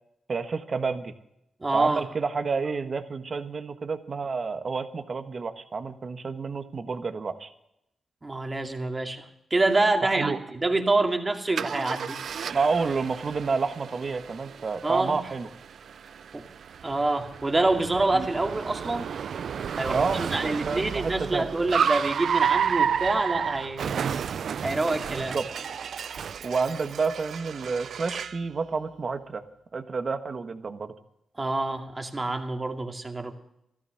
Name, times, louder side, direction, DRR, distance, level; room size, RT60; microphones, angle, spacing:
voice 1, 0.3-1.1 1.7-7.5 10.1-10.4 12.5-15.5 18.1-18.3 19.9-21.5 23.9-24.3 25.1-25.5 26.4-29.4 29.7-30.9, right 4 dB, 50° right, 9 dB, 1.4 m, -29 dB
voice 2, 1.6-2.0 8.2-9.3 9.5-12.2 14.8-15.2 16.3-16.5 16.8-19.1 19.8-23.9 24.6-25.4 31.4-33.3, right 2 dB, 30° right, 4 dB, 2.3 m, -26 dB
Car, 11.6-28.4, right 7 dB, 70° right, 0.4 m, -31 dB
14.0 x 13.0 x 6.5 m, 0.81 s
cardioid pair, 55°, 0 cm